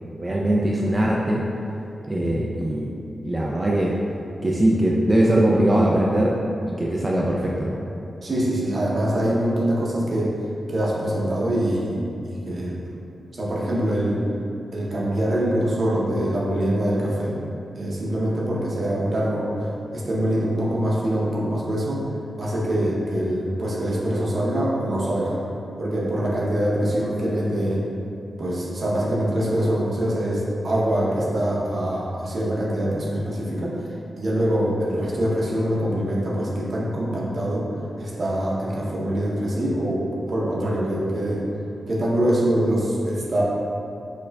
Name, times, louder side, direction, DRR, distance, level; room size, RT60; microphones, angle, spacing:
voice 1, 0.2-1.4 2.1-2.9 3.2-4.0 4.4-6.4 6.7-7.8, right 1 dB, 30° right, -4 dB, 0.3 m, -21 dB
voice 2, 2.2-2.5 8.2-10.3 10.7-12.8 13.3-14.2 14.7-17.4 17.8-22.0 22.4-25.4 25.8-27.8 28.4-33.8 34.2-37.7 38.0-41.5 41.9-43.4, right 1 dB, 60° right, -5 dB, 0.7 m, -24 dB
4.5 x 2.4 x 2.2 m, 2.6 s
cardioid pair, 50°, 0 cm